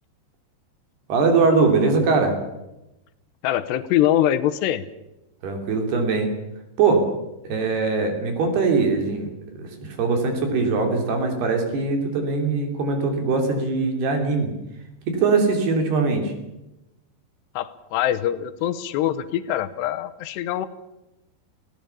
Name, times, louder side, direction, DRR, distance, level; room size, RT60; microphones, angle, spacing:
voice 1, 1.1-2.4 5.4-6.3 6.8-7.1 7.4-9.3 9.6-14.5 15.1-16.3, right 4 dB, 65° right, 4 dB, 5.1 m, -21 dB
voice 2, 3.4-4.8 17.6-20.7, left 12 dB, 80° left, 13 dB, 3.1 m, -23 dB
25.5 x 17.5 x 7.1 m, 0.94 s
omnidirectional pair, 5.2 m